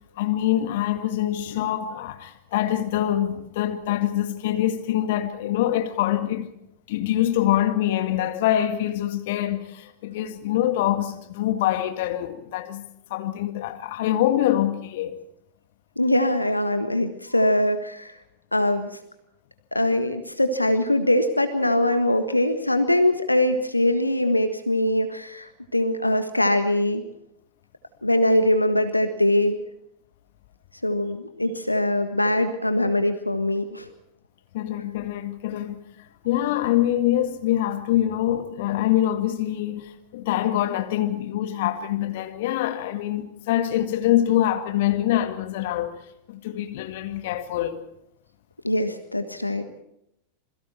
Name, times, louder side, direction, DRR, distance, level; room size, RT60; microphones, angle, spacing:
voice 1, 0.2-6.5 6.9-12.8 13.1-15.2 34.5-35.8 36.2-46.0 46.3-47.8, left 12 dB, 50° left, 1.9 m, -24 dB
voice 2, 16.0-18.2 18.5-18.9 19.7-27.0 28.0-29.6 30.8-33.9 48.6-49.6, left 1 dB, 85° left, 1.6 m, -22 dB
27.5 x 22.5 x 4.4 m
figure-of-eight pair, 90°, 0 cm